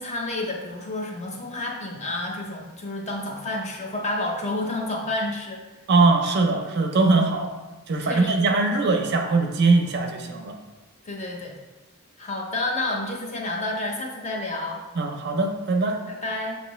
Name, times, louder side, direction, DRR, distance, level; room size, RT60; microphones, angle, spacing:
voice 1, 0.0-5.6 8.0-8.5 11.0-11.6 12.2-14.8 16.1-16.6, left 2 dB, 30° left, 0 dB, 0.6 m, -30 dB
voice 2, 5.9-7.5 7.9-10.5 15.0-16.0, right 3 dB, 50° right, 4 dB, 0.5 m, -21 dB
6.3 x 2.7 x 3.1 m, 1.2 s
head